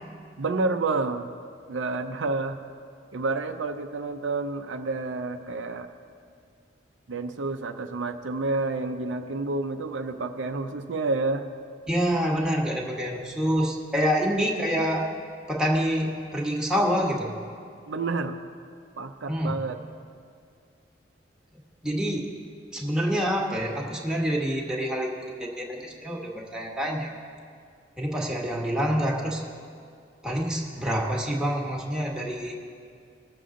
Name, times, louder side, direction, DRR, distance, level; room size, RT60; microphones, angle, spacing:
voice 1, 0.4-1.3 1.7-2.6 3.1-5.9 7.1-11.5 17.9-18.4 19.0-19.8, right 3 dB, 90° right, 6 dB, 0.6 m, -29 dB
voice 2, 11.9-15.1 15.5-17.3 19.3-19.6 21.8-22.3 22.7-27.1 28.0-29.4 30.2-32.6, equal, 5° right, -2 dB, 1.2 m, -27 dB
19.0 x 6.9 x 3.8 m, 2.2 s
head